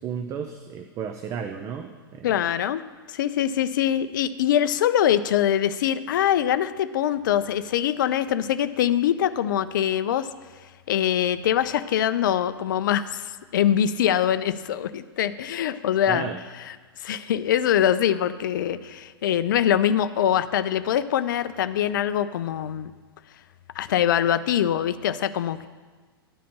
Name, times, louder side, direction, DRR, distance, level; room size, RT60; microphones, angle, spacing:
voice 1, 0.0-2.3 16.1-16.4, right 7 dB, 25° right, 7 dB, 0.5 m, -33 dB
voice 2, 2.2-2.8 3.1-10.3 10.9-16.3 17.0-22.9 23.8-25.7, left 10 dB, 55° left, 14 dB, 0.4 m, -23 dB
11.0 x 5.0 x 6.7 m, 1.4 s
figure-of-eight pair, 100°, 13 cm